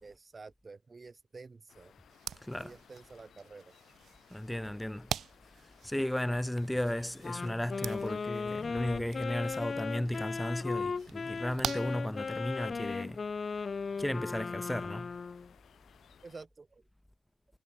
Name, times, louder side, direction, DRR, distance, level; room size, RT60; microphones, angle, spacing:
voice 1, 0.0-2.0 2.6-3.8 16.2-16.8, right 4 dB, 40° right, 2.1 m, -50 dB
sound 1, 1.7-16.5, left 8 dB, 80° left, 1.0 m, -60 dB
sound 2, 2.1-12.7, right 8 dB, 80° right, 1.2 m, -45 dB
voice 2, 2.4-2.8 4.3-5.1 5.4-13.3 13.5-15.2, left 1 dB, 10° left, 1.2 m, -35 dB
Wind instrument woodwind instrument, 7.2-15.5, left 5 dB, 50° left, 0.5 m, -37 dB
cardioid pair, 70°, 0 cm